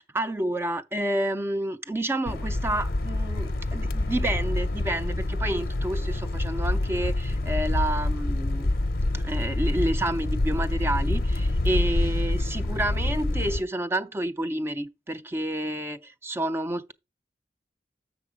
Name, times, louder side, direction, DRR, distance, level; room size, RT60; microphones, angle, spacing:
voice 1, 0.1-8.7 9.1-16.9, right 1 dB, 15° right, 0.3 m, -29 dB
sound 1, 2.3-13.6, left 2 dB, 55° left, 0.6 m, -27 dB
7.0 x 6.5 x 4.8 m
head